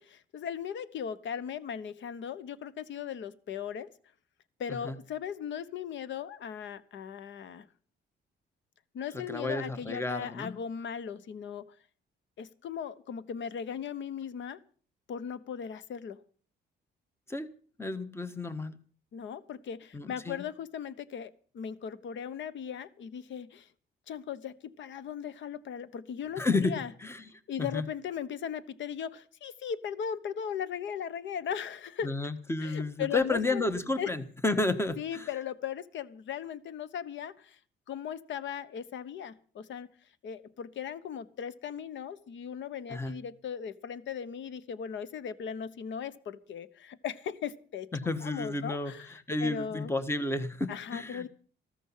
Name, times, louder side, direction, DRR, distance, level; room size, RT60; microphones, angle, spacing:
voice 1, 0.0-3.9 4.6-7.7 8.9-11.7 12.4-14.6 15.1-16.2 19.1-23.7 24.1-26.9 27.5-32.1 32.6-33.6 34.0-34.1 35.0-37.6 37.9-39.9 40.2-47.9 48.2-49.9 50.7-51.3, left 8 dB, 70° left, 17 dB, 1.1 m, -38 dB
voice 2, 9.3-10.6 17.3-17.5 17.8-18.8 19.9-20.4 26.4-26.7 27.0-27.2 27.6-27.8 32.0-35.3 42.9-43.1 47.9-48.9 49.3-51.2, left 2 dB, 10° left, 12 dB, 1.3 m, -31 dB
14.0 x 14.0 x 5.7 m, 0.43 s
cardioid pair, 90°, 20 cm